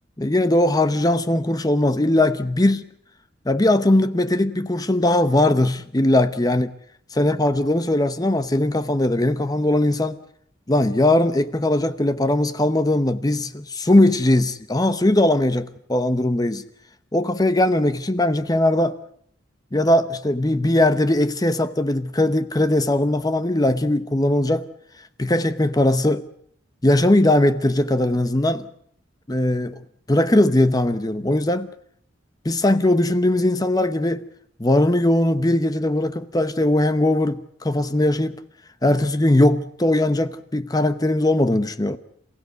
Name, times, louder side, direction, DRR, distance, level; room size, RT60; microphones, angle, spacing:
voice 1, 0.2-2.8 3.5-6.7 7.1-10.2 10.7-16.6 17.1-19.0 19.7-24.7 25.2-26.2 26.8-28.7 29.3-29.7 30.1-31.7 32.4-34.2 34.6-38.4 38.8-42.0, left 1 dB, 20° left, 0.9 m, -19 dB
28.0 x 16.5 x 8.1 m
head